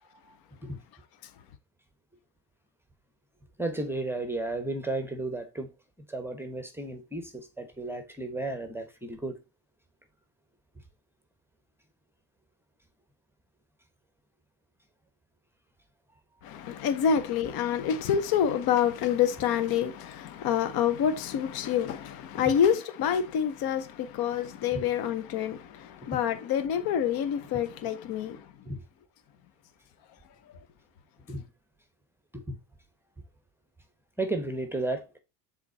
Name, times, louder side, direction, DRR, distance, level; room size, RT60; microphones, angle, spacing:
voice 1, 3.6-5.7 6.1-9.4 22.5-22.6 24.7-24.8 26.1-26.2 28.7-28.8 31.3-31.5 32.3-32.6 34.2-35.1, right 2 dB, 5° right, 1.0 m, -33 dB
voice 2, 16.4-28.4, left 8 dB, 45° left, 1.0 m, -27 dB
7.2 x 3.8 x 4.1 m
hypercardioid pair, 90°, 50 cm